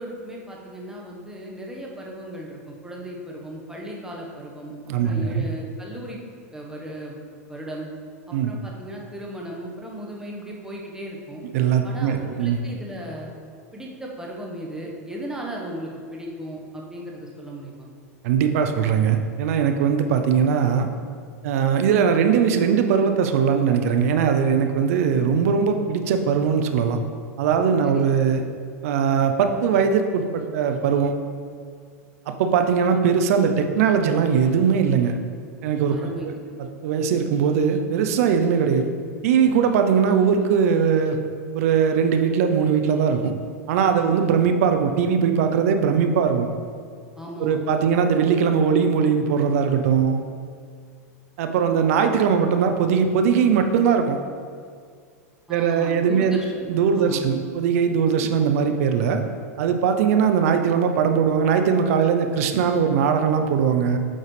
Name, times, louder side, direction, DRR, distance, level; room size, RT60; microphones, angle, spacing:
voice 1, 0.0-6.2 6.5-7.2 7.5-7.9 8.3-11.4 11.8-13.3 13.7-17.9 27.8-28.0 35.9-36.4 47.2-48.0 55.5-57.3, right 1 dB, 5° right, -2 dB, 1.2 m, -36 dB
voice 2, 4.9-5.4 8.3-8.5 11.5-12.6 18.2-20.9 21.4-27.0 27.4-28.4 28.8-31.1 32.3-35.1 35.6-36.0 36.8-38.9 39.2-41.2 41.5-43.3 43.7-46.5 47.4-50.2 51.4-54.2 55.5-56.4 56.7-59.2 59.6-64.0, right 7 dB, 65° right, 6 dB, 0.6 m, -20 dB
8.7 x 4.0 x 3.3 m, 2.1 s
hypercardioid pair, 100°, 8 cm